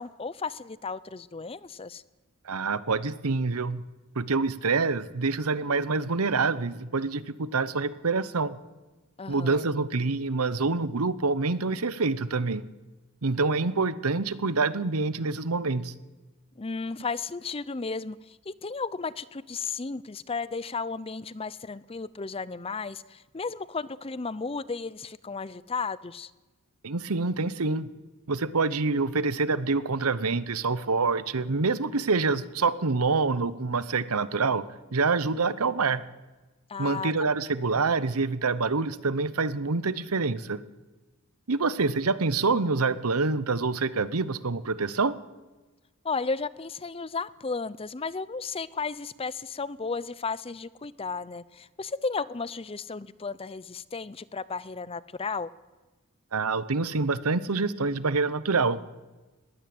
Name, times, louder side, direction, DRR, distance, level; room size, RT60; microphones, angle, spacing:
voice 1, 0.0-2.0 9.2-9.7 16.6-26.3 36.7-37.1 37.4-37.5 46.0-55.5, left 4 dB, 25° left, 19 dB, 0.5 m, -34 dB
voice 2, 2.4-3.8 4.1-8.6 9.3-12.6 13.2-15.9 26.8-27.9 28.3-36.0 36.8-40.6 41.5-45.2 56.3-58.8, right 4 dB, 80° right, 16 dB, 0.9 m, -26 dB
20.5 x 16.5 x 7.8 m, 1.2 s
head